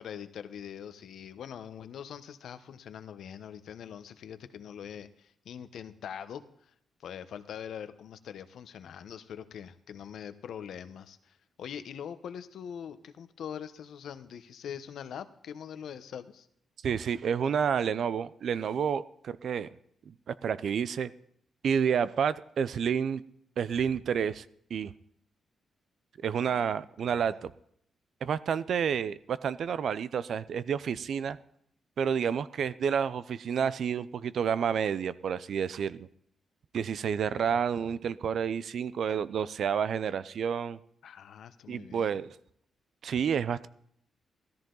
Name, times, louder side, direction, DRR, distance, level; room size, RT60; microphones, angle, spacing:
voice 1, 0.0-6.4 7.0-16.5 26.4-27.2 41.0-42.2, left 8 dB, 75° left, 11 dB, 1.0 m, -43 dB
voice 2, 16.8-19.7 20.1-21.1 21.6-23.2 23.6-24.4 24.7-24.9 26.2-27.5 28.2-31.4 32.0-36.1 36.7-40.8 41.7-42.3 43.0-43.7, right 7 dB, 65° right, 17 dB, 0.6 m, -29 dB
17.0 x 13.5 x 3.9 m, 0.69 s
cardioid pair, 110°, 0 cm